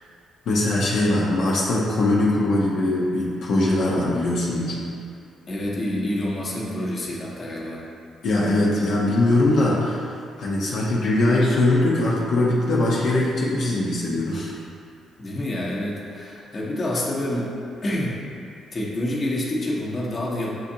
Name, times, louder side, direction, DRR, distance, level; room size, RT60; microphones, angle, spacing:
voice 1, 0.5-4.8 8.2-10.1 10.4-14.5, left 2 dB, 70° left, -6 dB, 0.7 m, -21 dB
voice 2, 5.5-7.8 15.2-17.5 17.8-18.2 18.7-20.5, left 1 dB, 35° left, -5 dB, 0.9 m, -27 dB
7.5 x 2.6 x 2.7 m, 2.4 s
cardioid pair, 90°, 0 cm